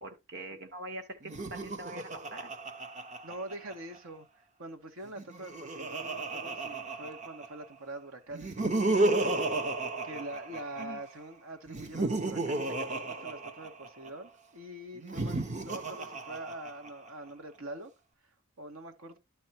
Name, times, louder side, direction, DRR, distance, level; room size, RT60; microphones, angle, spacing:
voice 1, 0.0-2.5 10.8-11.0, right 2 dB, 50° right, 1.9 m, -43 dB
Laughter, 1.2-4.0 5.1-7.7 8.3-11.0 11.7-14.1 15.0-17.1, right 2 dB, 35° right, 1.0 m, -33 dB
voice 2, 3.2-8.6 10.0-17.9 18.2-19.2, right 1 dB, 85° right, 2.0 m, -44 dB
11.5 x 4.3 x 4.5 m
head